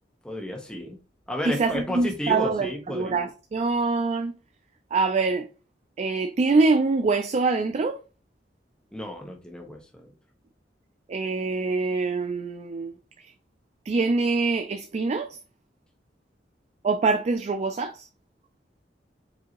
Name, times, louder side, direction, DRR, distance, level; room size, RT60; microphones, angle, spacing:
voice 1, 0.2-1.0 1.3-3.2 8.9-10.1, left 1 dB, 5° left, 0.8 m, -32 dB
voice 2, 1.5-2.7 2.9-4.3 4.9-5.5 6.0-8.0 11.1-12.9 13.9-15.3 16.8-18.1, right 3 dB, 40° right, 0.3 m, -24 dB
4.9 x 2.7 x 2.9 m
head